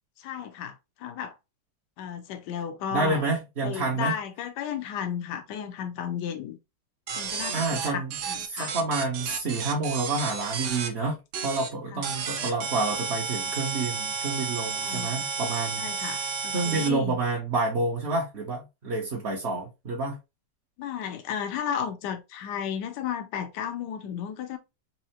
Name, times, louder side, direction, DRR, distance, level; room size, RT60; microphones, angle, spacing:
voice 1, 0.2-1.4 2.0-3.2 3.6-6.6 7.1-8.7 11.9-12.0 14.7-15.3 15.8-17.2 20.8-24.6, left 8 dB, 80° left, 1.3 m, -34 dB
voice 2, 2.9-4.1 7.5-8.2 8.5-11.2 11.4-16.1 16.5-20.2, right 3 dB, 45° right, 1.1 m, -29 dB
sound 1, 7.1-10.9 11.3-11.7 12.0-16.9, right 6 dB, 75° right, 1.3 m, -32 dB
4.3 x 2.7 x 2.8 m
omnidirectional pair, 1.8 m